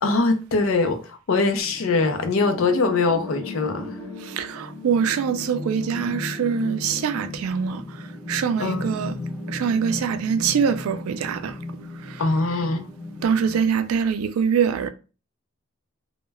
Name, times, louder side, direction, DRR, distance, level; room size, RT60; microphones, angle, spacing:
voice 1, 0.0-3.9 8.6-8.9 12.2-12.9, left 3 dB, 70° left, 0.5 m, -22 dB
sound 1, 1.6-13.6, left 2 dB, 5° right, 0.8 m, -36 dB
voice 2, 4.2-7.8 8.3-9.1 9.5-11.5 12.1-12.2 13.2-14.9, right 7 dB, 90° right, 0.3 m, -24 dB
2.1 x 2.1 x 3.3 m
head